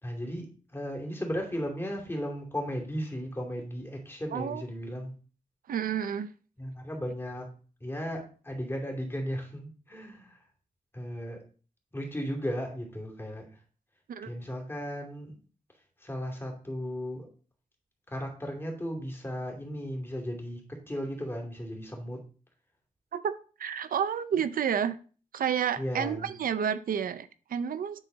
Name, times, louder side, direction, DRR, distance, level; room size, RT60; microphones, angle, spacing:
voice 1, 0.0-5.1 6.6-7.5 7.8-10.4 10.9-11.4 11.9-13.5 14.3-15.3 16.0-17.3 18.1-20.6 20.9-22.2 25.8-26.3, equal, 15° left, 0 dB, 2.7 m, -35 dB
voice 2, 4.3-4.6 5.7-6.3 14.1-14.3 23.1-25.0 25.3-28.0, right 8 dB, 85° right, 13 dB, 0.5 m, -30 dB
9.9 x 3.9 x 4.0 m, 0.39 s
cardioid pair, 75°, 14 cm